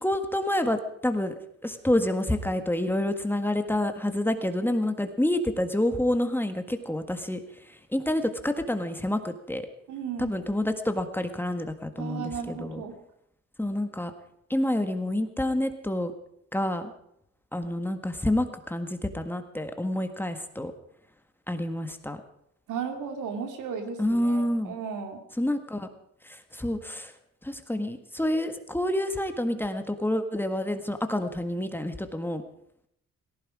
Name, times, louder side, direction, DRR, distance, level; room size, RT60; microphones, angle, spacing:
voice 1, 0.0-1.3 1.6-7.4 7.9-9.7 10.2-12.8 13.6-14.1 14.5-16.1 16.5-16.9 17.5-20.7 21.5-22.2 24.0-24.7 25.4-25.9 26.5-27.1 27.4-32.4, left 1 dB, 5° left, 7 dB, 1.6 m, -28 dB
voice 2, 9.9-10.4 12.0-12.9 22.7-25.2, right 6 dB, 80° right, 5 dB, 2.6 m, -35 dB
18.0 x 16.0 x 4.9 m, 0.74 s
cardioid pair, 90°, 30 cm